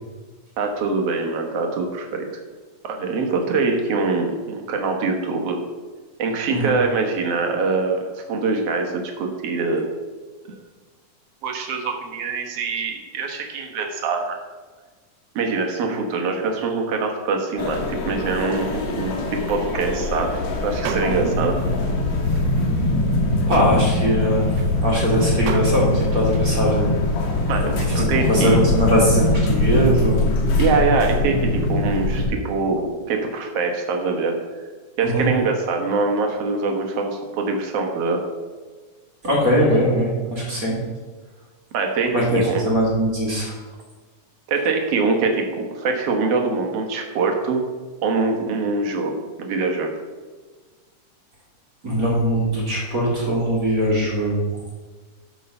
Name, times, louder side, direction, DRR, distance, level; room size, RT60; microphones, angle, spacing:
voice 1, 0.6-2.3 2.9-5.6 6.2-9.8 10.5-10.6 11.4-14.4 15.4-20.3 20.6-21.6 27.5-28.6 30.6-34.3 35.0-38.2 41.7-42.6 44.5-47.6 48.0-49.9, right 4 dB, 60° right, 2 dB, 1.9 m, -24 dB
sound 1, 17.6-32.3, left 2 dB, 65° left, 2.4 m, -22 dB
sound 2, 20.3-20.4 20.7-21.6 21.8-21.9 22.3-27.0, right 6 dB, 85° right, 2.3 m, -34 dB
voice 2, 21.1-21.5 23.5-24.5 24.8-26.9 27.9-28.0 28.3-30.3 35.0-35.3 39.2-40.8 42.1-43.6 51.8-54.6, equal, 30° right, -4 dB, 2.0 m, -21 dB
12.0 x 4.7 x 5.3 m, 1.4 s
omnidirectional pair, 3.6 m